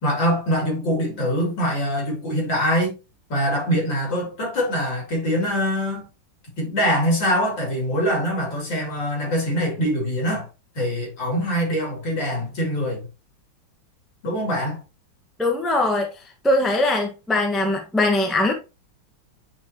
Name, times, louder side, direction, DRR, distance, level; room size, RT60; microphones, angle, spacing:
voice 1, 0.0-3.0 3.3-6.1 6.6-10.5 10.8-13.1 14.2-14.8, equal, 60° left, 3.7 m, -23 dB
voice 2, 15.4-16.1 16.4-18.5, left 2 dB, ahead, 0.8 m, -21 dB
9.4 x 4.5 x 2.8 m
omnidirectional pair, 2.4 m